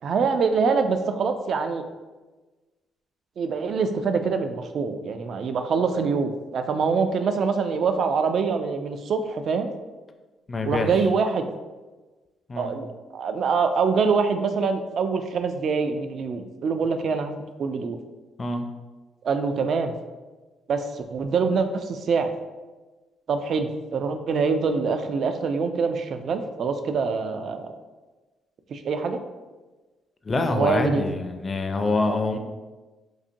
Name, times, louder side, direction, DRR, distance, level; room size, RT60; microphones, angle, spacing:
voice 1, 0.0-1.8 3.4-9.7 10.6-11.5 12.6-17.3 17.6-18.0 19.2-19.9 20.7-22.3 23.3-27.7 28.7-29.2 30.5-31.0, right 5 dB, 60° right, 8 dB, 0.3 m, -25 dB
voice 2, 10.5-10.9 12.5-12.7 18.4-18.7 30.2-32.4, left 3 dB, 30° left, 5 dB, 0.4 m, -25 dB
4.0 x 2.8 x 2.5 m, 1.2 s
cardioid pair, 90°, 0 cm